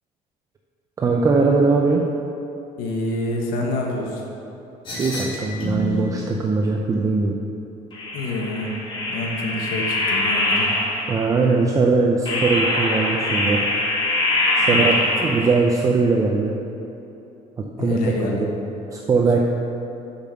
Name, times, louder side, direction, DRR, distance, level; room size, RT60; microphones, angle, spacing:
voice 1, 1.0-2.0 5.0-7.4 11.1-13.6 14.6-16.5 17.8-18.5 18.9-19.4, right 4 dB, 20° right, 0 dB, 0.5 m, -20 dB
voice 2, 2.8-4.2 8.1-8.7 9.1-10.7 14.6-15.3 17.8-18.4, left 2 dB, 75° left, -1 dB, 1.2 m, -27 dB
sound 1, 4.9-6.2 7.9-11.3 12.3-15.6, left 1 dB, 35° left, 1.9 m, -23 dB
7.1 x 5.7 x 6.3 m, 2.9 s
cardioid pair, 160°, 15 cm